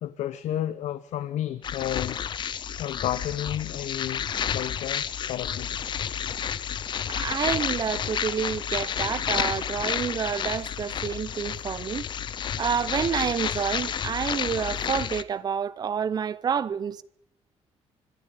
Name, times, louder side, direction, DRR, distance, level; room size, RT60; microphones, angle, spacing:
voice 1, 0.0-2.2 2.8-5.7, left 12 dB, 80° left, 1.0 m, -32 dB
sound 1, 1.6-15.2, left 8 dB, 40° left, 0.7 m, -30 dB
voice 2, 7.1-12.1 12.6-17.0, right 7 dB, 35° right, 0.8 m, -29 dB
25.0 x 12.0 x 9.9 m
cardioid pair, 175°, 12 cm